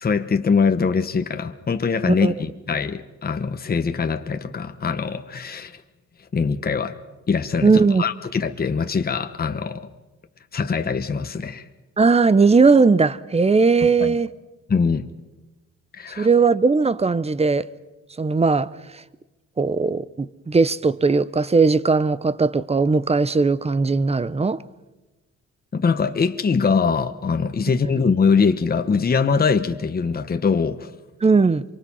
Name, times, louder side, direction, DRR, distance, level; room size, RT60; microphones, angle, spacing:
voice 1, 0.0-5.8 6.3-7.0 7.3-9.9 10.5-11.7 13.8-14.1 14.7-15.1 15.9-16.3 25.7-30.9, left 5 dB, 30° left, 1.2 m, -22 dB
voice 2, 7.6-8.0 12.0-14.3 16.2-17.7 18.2-18.7 19.6-24.6 31.2-31.6, right 4 dB, 20° right, 0.8 m, -18 dB
25.5 x 24.0 x 5.7 m
cardioid pair, 90°, 30 cm